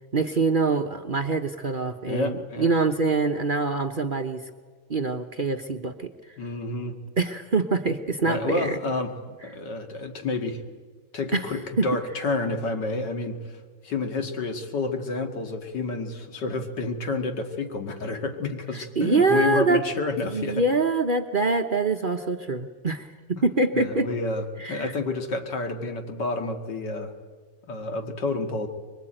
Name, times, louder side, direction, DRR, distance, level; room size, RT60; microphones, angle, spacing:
voice 1, 0.1-4.4 4.9-6.1 7.2-8.8 11.3-11.5 11.8-11.9 18.7-19.9 20.2-24.1 24.6-24.9, right 3 dB, 40° right, 6 dB, 0.8 m, -24 dB
voice 2, 2.1-2.7 6.4-7.0 8.2-9.1 9.4-10.6 11.1-13.6 13.8-20.6 23.7-27.1 27.7-28.7, left 3 dB, 85° left, 5 dB, 2.6 m, -29 dB
24.0 x 23.0 x 9.0 m, 1.5 s
omnidirectional pair, 1.8 m